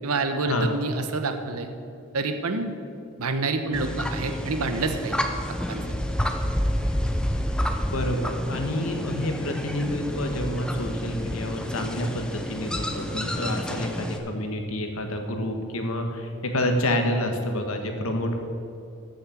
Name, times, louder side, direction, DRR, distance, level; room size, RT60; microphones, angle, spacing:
voice 1, 0.0-1.7 2.1-2.7 3.2-5.2 5.7-5.8, right 3 dB, 85° right, 7 dB, 1.1 m, -27 dB
sound 1, 3.7-14.2, equal, 5° left, 0.6 m, -29 dB
voice 2, 7.9-18.4, left 1 dB, 70° left, 4 dB, 1.5 m, -28 dB
14.0 x 6.6 x 7.2 m, 2.5 s
head